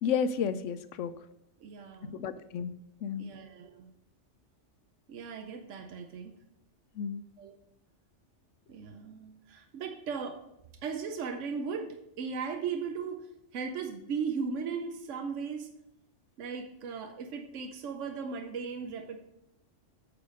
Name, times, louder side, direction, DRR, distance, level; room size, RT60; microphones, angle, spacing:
voice 1, 0.0-1.1 2.1-2.7 3.0-3.2 7.0-7.2, left 7 dB, 85° left, 13 dB, 0.9 m, -31 dB
voice 2, 1.6-2.4 3.2-3.9 5.1-6.3 7.4-7.5 8.7-10.4 10.8-15.7 16.4-19.2, right 5 dB, 80° right, 5 dB, 1.1 m, -37 dB
8.5 x 4.8 x 5.1 m, 0.82 s
omnidirectional pair, 1.2 m